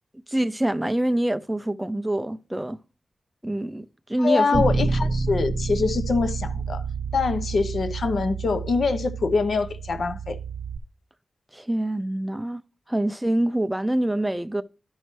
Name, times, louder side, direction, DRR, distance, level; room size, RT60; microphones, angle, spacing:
voice 1, 0.1-2.8 3.4-4.6 11.5-12.6 12.9-14.6, right 1 dB, 5° right, 0.4 m, -25 dB
voice 2, 4.2-6.8 7.1-10.4, left 4 dB, 55° left, 0.7 m, -24 dB
Bass guitar, 4.5-10.8, right 4 dB, 55° right, 0.9 m, -29 dB
12.0 x 5.5 x 3.0 m
wide cardioid pair, 180°, 0 cm